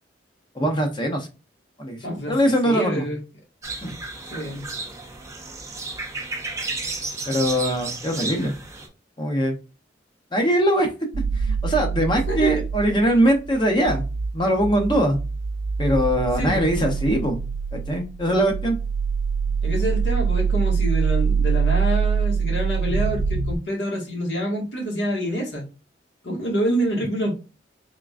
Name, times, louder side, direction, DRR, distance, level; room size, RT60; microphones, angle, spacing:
voice 1, 0.6-1.3 1.8-2.0 2.3-3.1 3.8-3.9 7.3-8.5 9.2-9.6 10.3-10.9 11.6-14.0 14.3-15.2 15.8-17.4 17.9-18.8, right 1 dB, 25° left, 4 dB, 0.7 m, -21 dB
voice 2, 2.0-2.3 2.6-3.2 4.3-4.6 12.3-12.6 16.4-16.7 19.6-25.6 26.2-27.4, equal, 75° left, -1 dB, 1.7 m, -26 dB
sound 1, 3.6-8.9, right 3 dB, 15° right, 0.6 m, -33 dB
sound 2, 11.1-23.6, right 5 dB, 55° right, 0.3 m, -25 dB
3.7 x 3.4 x 2.4 m, 0.31 s
head